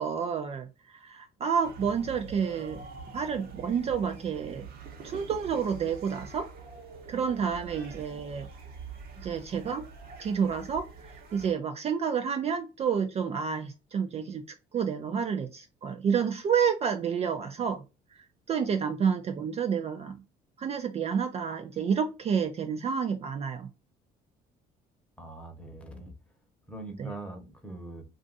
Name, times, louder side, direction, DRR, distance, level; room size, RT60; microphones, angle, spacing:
voice 1, 0.0-2.8 3.1-4.7 5.0-6.5 7.1-8.5 9.2-9.8 10.2-14.4 14.7-17.8 18.5-20.2 20.6-23.7 27.0-27.1, right 7 dB, 40° right, 0.4 m, -29 dB
sound 1, 1.6-11.5, right 5 dB, 60° right, 0.9 m, -45 dB
voice 2, 25.2-26.1 26.7-28.0, right 2 dB, 5° left, 0.9 m, -42 dB
2.5 x 2.4 x 3.8 m
cardioid pair, 110°, 17 cm